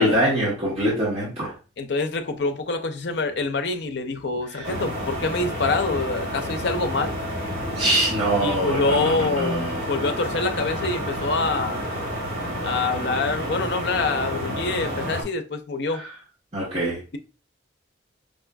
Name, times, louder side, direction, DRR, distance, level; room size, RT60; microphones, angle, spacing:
voice 1, 0.0-1.5 4.5-4.7 7.7-9.8 15.9-16.1 16.5-17.0, right 1 dB, 35° right, 1.1 m, -24 dB
voice 2, 1.8-7.1 8.4-11.9 12.6-16.0, left 3 dB, 60° left, 0.5 m, -26 dB
sound 1, 4.6-15.2, equal, 80° right, 1.5 m, -30 dB
5.2 x 2.4 x 2.2 m
head